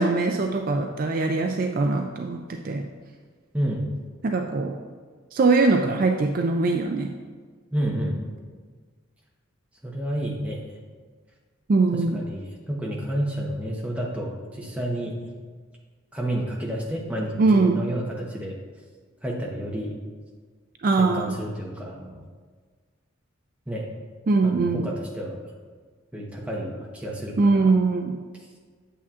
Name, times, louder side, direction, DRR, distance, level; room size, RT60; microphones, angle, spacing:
voice 1, 0.0-2.9 4.2-4.8 5.3-7.1 11.7-12.2 17.4-17.8 20.8-21.4 24.3-24.9 27.4-28.2, right 3 dB, 40° right, 4 dB, 0.3 m, -22 dB
voice 2, 7.7-8.2 9.8-10.8 11.9-15.2 16.1-18.6 19.2-20.0 21.0-22.3 23.7-23.9 24.4-25.4 26.1-27.7 28.4-28.5, right 1 dB, 5° right, -2 dB, 0.9 m, -30 dB
8.4 x 7.2 x 2.4 m, 1.5 s
head